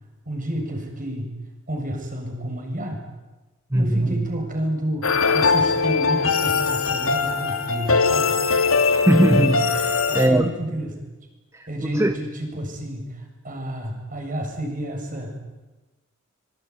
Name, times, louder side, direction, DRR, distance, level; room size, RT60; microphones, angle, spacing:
voice 1, 0.3-1.4 1.7-3.1 3.7-8.4 10.1-10.9 11.7-15.4, equal, 40° right, 7.3 m, -30 dB
voice 2, 3.7-4.1 8.9-10.5 12.0-12.1, right 1 dB, 15° right, 1.1 m, -19 dB
sound 1, 5.0-10.3, left 4 dB, 85° left, 2.6 m, -21 dB
25.0 x 24.0 x 9.8 m
head